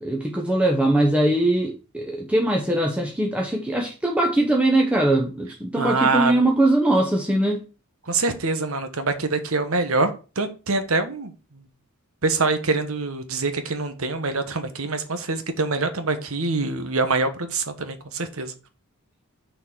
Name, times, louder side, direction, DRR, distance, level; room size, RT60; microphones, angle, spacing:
voice 1, 0.0-7.6, right 1 dB, 5° right, 0.9 m, -21 dB
voice 2, 5.8-6.3 8.1-11.3 12.2-18.5, right 3 dB, 70° right, 1.2 m, -25 dB
6.3 x 4.7 x 6.2 m
head